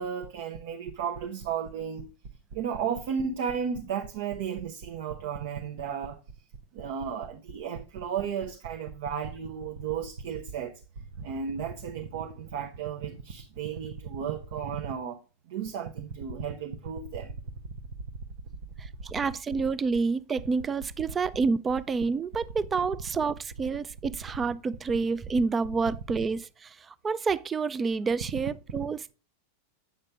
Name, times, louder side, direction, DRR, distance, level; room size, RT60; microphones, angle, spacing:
voice 1, 0.0-2.1 2.5-6.2 6.7-10.8 11.2-15.2 15.5-17.3, right 7 dB, 55° right, 0.9 m, -34 dB
voice 2, 18.8-29.1, right 4 dB, 20° right, 0.4 m, -29 dB
9.0 x 6.6 x 3.4 m
figure-of-eight pair, 90°, 0 cm